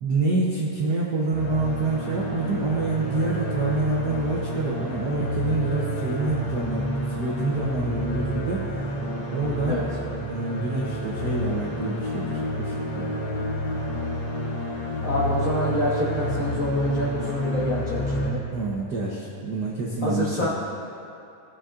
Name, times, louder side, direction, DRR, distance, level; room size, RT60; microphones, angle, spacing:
voice 1, 0.0-6.9 7.2-8.7 9.3-9.9 10.2-13.1 18.5-20.5, right 3 dB, 80° right, -5 dB, 0.9 m, -27 dB
sound 1, 1.3-18.3, equal, 55° left, 1.2 m, -29 dB
voice 2, 15.0-18.4 20.0-20.5, left 1 dB, 85° left, -7 dB, 0.7 m, -27 dB
18.0 x 7.0 x 2.5 m, 2.6 s
omnidirectional pair, 3.3 m